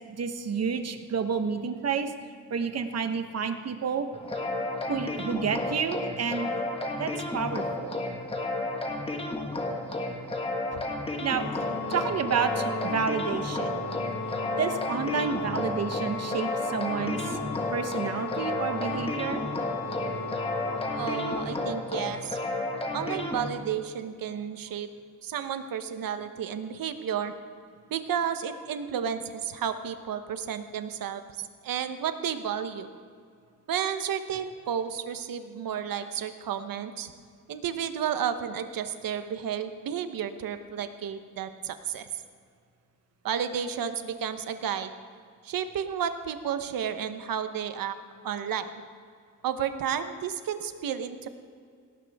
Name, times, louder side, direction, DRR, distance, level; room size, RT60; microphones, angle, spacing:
voice 1, 0.1-2.1 2.5-4.1 4.9-6.5 7.0-7.9 11.2-11.5 11.9-13.8 14.6-17.4 17.7-19.4, right 6 dB, 50° right, 7 dB, 1.1 m, -30 dB
sound 1, 4.1-23.5, left 2 dB, 15° left, 1.5 m, -32 dB
Organ, 11.3-22.2, left 4 dB, 45° left, 1.7 m, -36 dB
voice 2, 21.0-22.4 22.9-24.9 25.2-27.3 27.9-32.9 33.7-37.1 37.5-42.1 43.2-44.9 45.4-48.0 48.2-48.7 49.4-51.3, right 8 dB, 80° right, 9 dB, 1.1 m, -32 dB
18.5 x 17.0 x 3.6 m, 2.2 s
wide cardioid pair, 145°, 34 cm